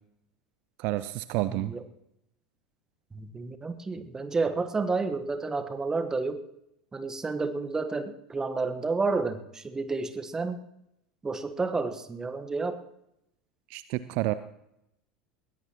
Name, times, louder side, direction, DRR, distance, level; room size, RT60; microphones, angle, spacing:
voice 1, 0.8-1.7 13.7-14.3, right 17 dB, 50° right, 14 dB, 0.5 m, -29 dB
voice 2, 1.5-1.8 3.1-6.4 6.9-10.6 11.2-12.8, right 4 dB, 15° right, 9 dB, 1.2 m, -30 dB
21.0 x 16.5 x 3.0 m, 0.82 s
figure-of-eight pair, 80°, 4 cm